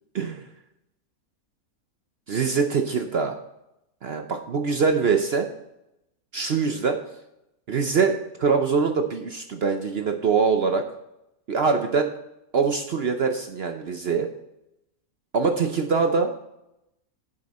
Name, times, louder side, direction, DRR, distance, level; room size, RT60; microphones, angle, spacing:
voice 1, 2.3-3.4 4.0-5.5 6.3-7.0 7.7-10.8 11.5-12.1 12.5-14.3 15.3-16.3, right 5 dB, 55° right, 5 dB, 0.8 m, -23 dB
9.6 x 7.7 x 4.2 m, 0.84 s
omnidirectional pair, 1.5 m